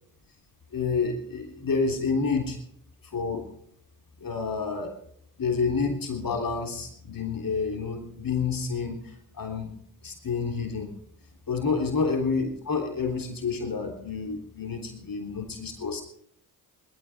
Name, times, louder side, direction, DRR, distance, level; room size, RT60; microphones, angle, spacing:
voice 1, 0.7-2.6 3.0-3.5 4.2-4.9 5.4-9.7 10.0-10.9 11.5-16.0, left 4 dB, 45° left, 2 dB, 3.6 m, -29 dB
21.0 x 13.0 x 3.6 m, 0.66 s
hypercardioid pair, 50°, 45 cm